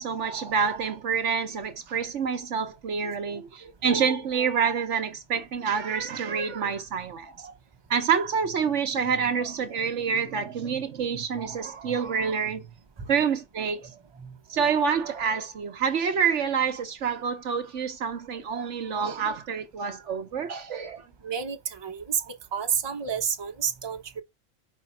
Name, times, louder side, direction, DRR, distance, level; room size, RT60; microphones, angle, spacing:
voice 1, 0.0-7.5 7.9-12.7 13.1-13.9 14.5-21.1 22.2-22.3, right 6 dB, 65° right, 1.1 m, -27 dB
voice 2, 21.2-22.2 22.5-24.2, right 8 dB, 20° right, 0.8 m, -30 dB
5.3 x 4.1 x 5.8 m
omnidirectional pair, 1.4 m